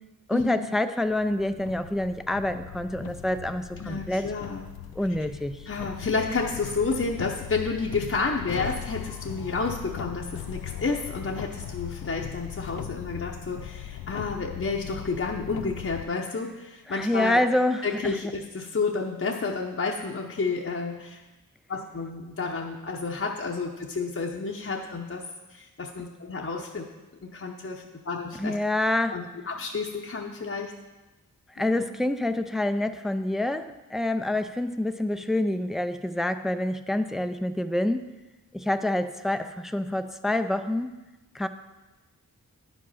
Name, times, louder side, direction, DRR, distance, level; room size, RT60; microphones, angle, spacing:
voice 1, 0.3-4.3 5.0-5.5 16.9-18.2 28.4-29.2 31.6-38.1 38.5-41.0 41.3-41.5, left 1 dB, ahead, 9 dB, 0.5 m, -27 dB
sound 1, 1.1-16.1, left 10 dB, 85° left, 0.5 m, -39 dB
voice 2, 3.8-4.8 5.7-17.4 17.8-21.2 21.7-25.2 25.5-26.9 27.2-28.6 29.1-30.7 31.6-31.8, left 4 dB, 40° left, 0 dB, 0.9 m, -30 dB
9.9 x 5.2 x 5.6 m, 1.1 s
cardioid pair, 40°, 36 cm